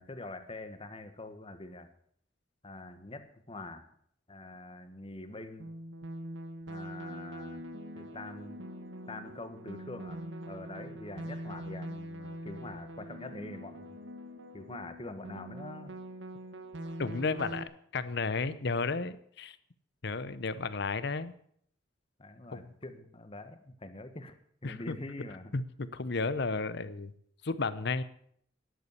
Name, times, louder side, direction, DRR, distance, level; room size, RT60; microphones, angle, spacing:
voice 1, 0.0-1.9 2.6-3.9 4.3-5.7 6.7-7.6 7.9-8.6 9.1-14.0 14.5-15.9 22.2-24.4 24.6-25.5, left 2 dB, 30° left, 9 dB, 1.3 m, -45 dB
sound 1, 5.6-17.6, right 1 dB, 75° right, 1.4 m, -43 dB
voice 2, 17.0-19.6 20.0-21.3 22.5-22.7 24.6-24.9 25.5-27.1 27.4-28.0, left 4 dB, 65° left, 15 dB, 0.8 m, -33 dB
11.5 x 8.3 x 8.3 m, 0.66 s
head